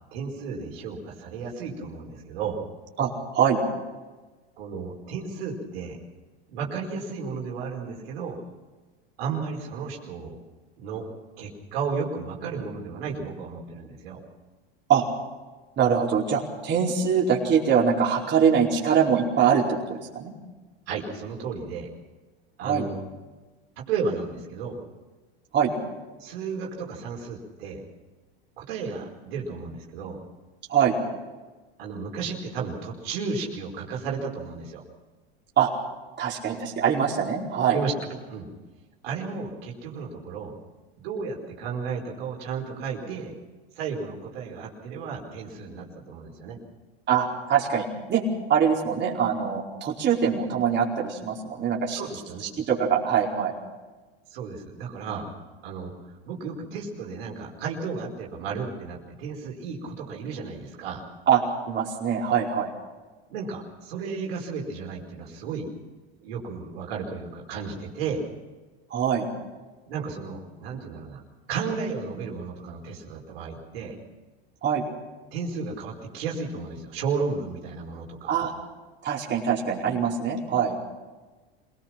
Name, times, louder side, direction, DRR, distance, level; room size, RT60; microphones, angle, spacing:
voice 1, 0.1-2.6 4.6-6.0 6.5-8.4 9.2-10.4 10.8-11.1 11.4-14.2 20.9-21.9 22.6-23.0 23.8-24.8 26.2-27.8 28.6-30.2 31.8-34.8 37.7-38.5 39.0-40.5 41.0-43.3 43.7-46.6 51.9-52.5 54.3-55.3 55.6-55.9 56.3-61.0 63.3-65.7 66.2-68.2 69.9-71.2 71.5-74.0 75.3-78.3, right 5 dB, 75° right, -1 dB, 5.0 m, -33 dB
voice 2, 3.0-3.6 14.9-15.0 15.8-20.3 22.6-22.8 25.5-25.7 30.7-30.9 35.6-35.7 36.2-37.8 47.1-48.2 48.5-52.0 52.6-53.5 61.3-61.4 61.7-62.7 68.9-69.3 74.6-74.8 78.3-78.5 79.0-80.7, right 7 dB, 35° right, -3 dB, 4.7 m, -23 dB
26.5 x 18.5 x 6.0 m, 1.3 s
hypercardioid pair, 100°, 30 cm